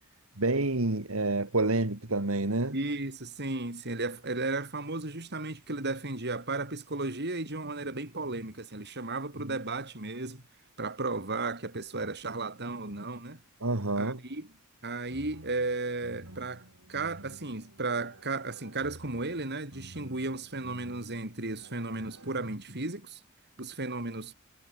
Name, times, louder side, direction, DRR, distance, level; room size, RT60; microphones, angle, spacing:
voice 1, 0.4-2.8 9.5-9.6 13.6-14.2, right 2 dB, 70° right, 2.2 m, -28 dB
voice 2, 2.7-10.4 10.8-13.4 14.0-14.5 14.8-23.2 23.6-24.3, right 3 dB, 50° right, 4.5 m, -34 dB
sound 1, 15.1-22.5, right 1 dB, 85° right, 5.5 m, -51 dB
head